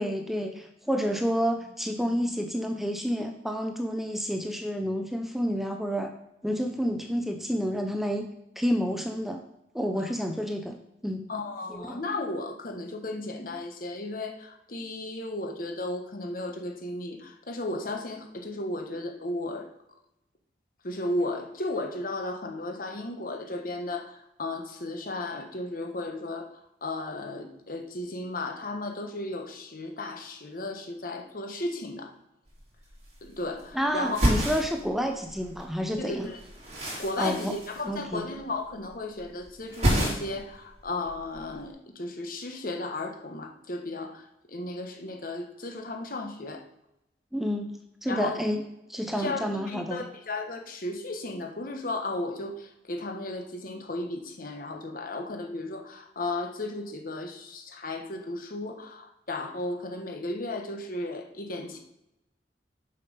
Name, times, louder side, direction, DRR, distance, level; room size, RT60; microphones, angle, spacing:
voice 1, 0.0-6.1 6.4-8.3 8.6-9.4 9.7-10.8 11.0-11.3 11.7-12.0 33.7-36.3 37.2-37.6 37.8-38.3 47.3-47.7 48.0-48.6 48.9-50.0, equal, ahead, 5 dB, 0.5 m, -29 dB
voice 2, 11.3-19.7 20.8-26.5 26.8-32.1 33.2-34.2 36.0-36.4 37.0-46.6 48.1-48.4 49.2-61.8, left 2 dB, 55° left, 4 dB, 1.2 m, -34 dB
sound 1, 32.5-32.6 32.8-33.7 34.0-35.6 35.9-38.4 38.7-39.2 39.5-40.5 40.8-41.6, equal, 40° right, 3.1 m, -29 dB
7.1 x 5.6 x 5.5 m, 0.86 s
head